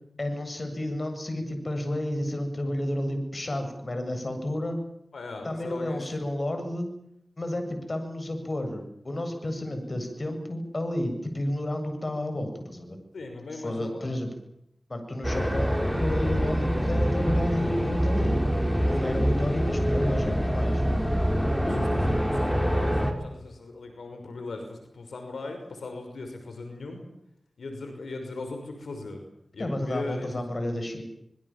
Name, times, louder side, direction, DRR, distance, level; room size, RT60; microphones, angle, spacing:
voice 1, 0.2-4.8 5.4-6.9 7.4-13.0 13.5-14.3 14.9-18.4 18.8-20.8 29.6-31.0, left 1 dB, 45° left, 6 dB, 8.0 m, -31 dB
voice 2, 5.1-6.1 13.1-14.2 18.8-19.2 21.6-27.1 27.6-29.2 29.5-30.3, left 3 dB, 90° left, 5 dB, 5.9 m, -39 dB
sound 1, 15.2-23.1, equal, 5° left, 5.4 m, -25 dB
25.5 x 22.5 x 7.5 m, 0.79 s
cardioid pair, 55°, 0 cm